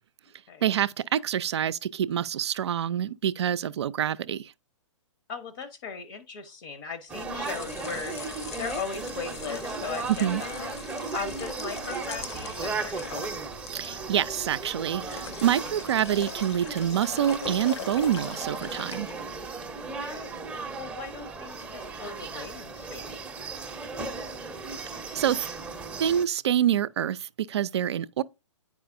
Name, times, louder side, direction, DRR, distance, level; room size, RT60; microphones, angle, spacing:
voice 1, 0.6-4.5 10.1-10.4 13.7-19.1 25.1-25.5 26.0-28.2, right 10 dB, 60° right, 0.4 m, -26 dB
voice 2, 5.3-10.7 11.1-13.3 19.9-20.4 20.8-23.3, left 6 dB, 45° left, 0.9 m, -38 dB
sound 1, 7.1-26.2, right 3 dB, 10° right, 0.6 m, -36 dB
sound 2, 7.3-19.6, left 8 dB, 60° left, 0.5 m, -43 dB
9.2 x 4.9 x 2.6 m
figure-of-eight pair, 120°, 16 cm